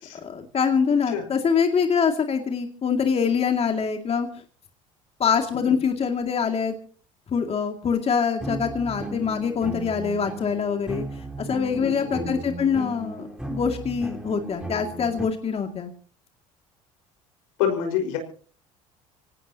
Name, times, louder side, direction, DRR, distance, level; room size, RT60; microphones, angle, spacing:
voice 1, 0.2-4.3 5.2-6.7 7.3-11.0 11.4-15.9, left 6 dB, 40° left, 5 dB, 2.4 m, -24 dB
sound 1, 8.4-15.3, right 2 dB, 5° right, 3.6 m, -35 dB
voice 2, 11.8-12.3 17.6-18.2, left 8 dB, 85° left, 5 dB, 5.1 m, -27 dB
25.5 x 18.5 x 2.9 m, 0.41 s
supercardioid pair, 75°, 16 cm